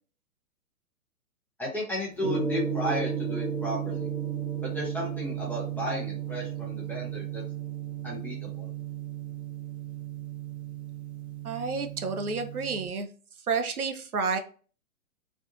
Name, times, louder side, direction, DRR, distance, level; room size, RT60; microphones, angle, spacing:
voice 1, 1.6-4.1 4.7-7.4 8.0-8.7, left 1 dB, 5° left, -5 dB, 0.9 m, -34 dB
Gong, 2.2-12.9, right 8 dB, 50° right, 0.8 m, -34 dB
voice 2, 11.4-13.1 13.5-14.4, right 4 dB, 85° right, 7 dB, 0.7 m, -30 dB
3.4 x 2.6 x 2.5 m, 0.39 s
figure-of-eight pair, 120°, 43 cm